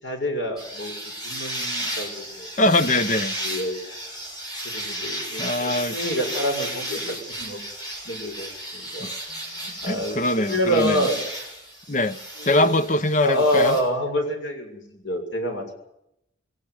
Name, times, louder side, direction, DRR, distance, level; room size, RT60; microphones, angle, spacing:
voice 1, 0.0-2.5 3.3-3.9 4.6-7.6 8.0-11.2 12.4-12.7 13.2-15.7, equal, 80° left, 6.8 m, -27 dB
sound 1, 0.6-13.8, right 1 dB, 20° left, 7.1 m, -34 dB
voice 2, 2.6-3.3 5.4-6.0 9.0-9.1 9.9-11.1 11.9-13.8, left 1 dB, 40° left, 1.0 m, -22 dB
22.5 x 17.5 x 9.7 m
head